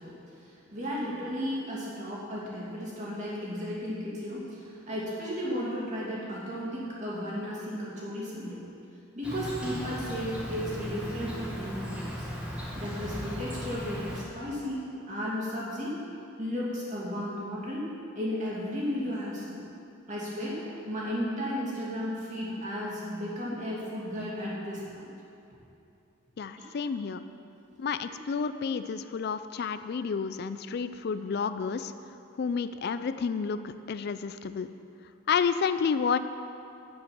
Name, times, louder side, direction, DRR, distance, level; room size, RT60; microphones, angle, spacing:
voice 1, 0.0-8.6 9.1-12.3 12.7-14.8 15.1-16.0 16.4-17.9 18.1-19.6 20.1-25.1 26.6-26.7 27.0-27.1, equal, 35° right, -6 dB, 2.4 m, -34 dB
Insect, 9.2-14.2, equal, 5° right, 1.6 m, -37 dB
voice 2, 26.4-27.2 27.8-31.9 32.4-34.7 35.3-36.2, left 6 dB, 50° left, 12 dB, 0.3 m, -30 dB
8.5 x 7.9 x 5.9 m, 2.6 s
head